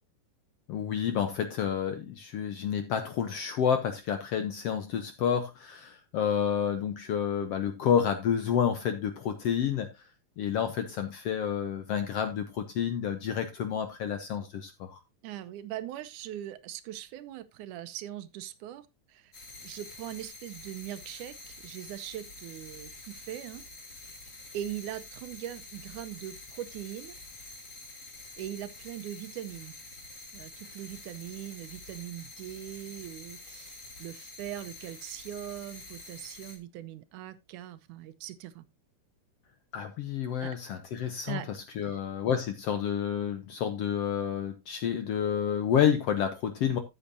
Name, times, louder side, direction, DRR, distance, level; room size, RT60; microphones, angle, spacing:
voice 1, 0.7-9.9 10.4-15.0 39.7-41.4 41.8-46.8, left 8 dB, 70° left, 1.6 m, -29 dB
voice 2, 15.2-19.3 19.6-23.6 24.1-24.2 24.5-27.2 28.4-29.7 30.3-38.6 40.4-40.6 41.3-41.5 41.8-42.0, right 12 dB, 90° right, 2.3 m, -41 dB
sound 1, 19.3-36.6, left 2 dB, 25° left, 2.4 m, -47 dB
13.5 x 7.8 x 2.7 m
omnidirectional pair, 3.5 m